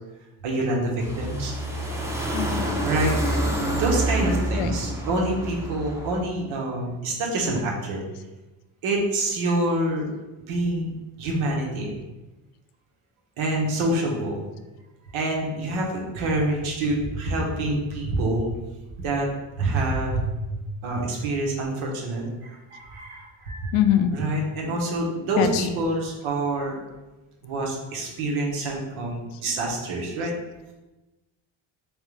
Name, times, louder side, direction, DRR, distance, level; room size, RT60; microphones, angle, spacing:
voice 1, 0.4-1.5 2.7-8.0 8.8-10.0 10.4-10.9 11.2-12.0 13.4-14.5 15.1-18.5 19.0-19.3 19.6-23.7 24.1-26.8 27.4-30.3, right 2 dB, 85° right, -1 dB, 1.1 m, -26 dB
sound 1, 1.0-6.2, right 1 dB, 5° right, 0.6 m, -27 dB
voice 2, 2.2-2.8 4.6-4.7 23.7-24.1 25.4-25.7 29.3-29.4, left 10 dB, 85° left, 8 dB, 0.5 m, -23 dB
3.5 x 3.2 x 3.2 m, 1.1 s
cardioid pair, 85°, 48 cm